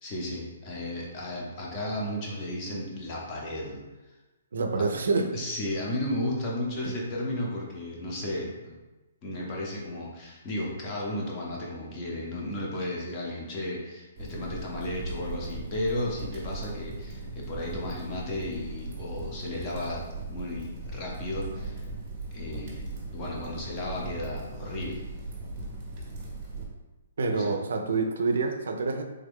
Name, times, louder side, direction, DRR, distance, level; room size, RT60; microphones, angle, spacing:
voice 1, 0.0-3.8 4.7-4.9 5.3-8.8 9.2-21.8 22.3-22.8 23.1-25.0 27.3-27.5, left 1 dB, 20° left, -3 dB, 0.6 m, -34 dB
voice 2, 4.5-5.3 6.8-6.9 27.2-29.0, right 4 dB, 85° right, 4 dB, 0.4 m, -27 dB
sound 1, 14.2-26.7, right 2 dB, 25° right, 0.7 m, -38 dB
3.2 x 2.2 x 3.5 m, 1.1 s
hypercardioid pair, 170°, 0 cm